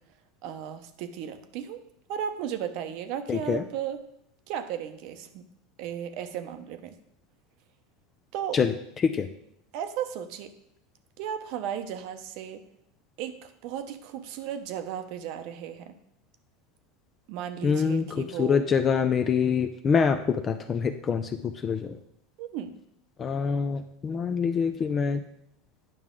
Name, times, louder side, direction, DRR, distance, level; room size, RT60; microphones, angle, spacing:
voice 1, 0.4-1.8 2.1-4.0 4.5-5.5 5.8-7.0 8.3-8.6 9.7-10.5 11.2-12.6 13.2-15.9 17.3-18.6 22.4-22.8, right 9 dB, 60° right, 10 dB, 0.8 m, -35 dB
voice 2, 3.3-3.6 8.5-8.7 9.0-9.3 17.6-22.0 23.2-25.2, left 6 dB, 25° left, 8 dB, 0.4 m, -25 dB
9.3 x 6.0 x 3.8 m, 0.74 s
supercardioid pair, 140°, 0 cm